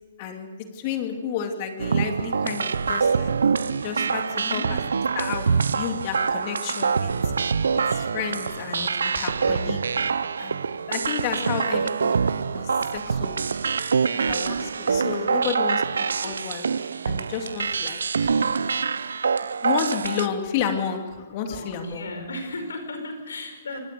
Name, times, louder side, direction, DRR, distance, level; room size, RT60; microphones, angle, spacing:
voice 1, 0.2-3.3 3.8-4.2 4.5-4.6 5.1-7.3 7.7-10.1 10.4-12.1 12.5-13.4 14.3-16.7 17.1-18.3 19.6-22.1, left 7 dB, 40° left, 5 dB, 2.5 m, -31 dB
sound 1, 1.8-20.3, right 5 dB, 80° right, 0.7 m, -25 dB
voice 2, 4.3-4.8 15.0-15.4 21.5-23.8, left 2 dB, 85° left, 7 dB, 4.9 m, -35 dB
25.0 x 19.0 x 6.8 m, 1.4 s
hypercardioid pair, 140°, 0 cm